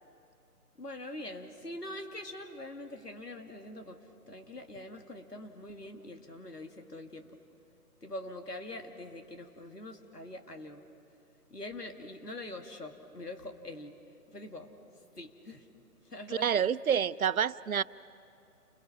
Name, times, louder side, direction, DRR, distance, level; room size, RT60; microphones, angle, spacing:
voice 1, 0.8-7.3 8.0-10.8 11.5-13.9 14.3-14.7 15.2-15.7 16.0-17.0, left 1 dB, 85° left, 4 dB, 2.3 m, -44 dB
voice 2, 16.4-17.8, right 8 dB, 65° right, 19 dB, 0.6 m, -28 dB
29.0 x 22.0 x 5.8 m, 2.6 s
figure-of-eight pair, 140°, 46 cm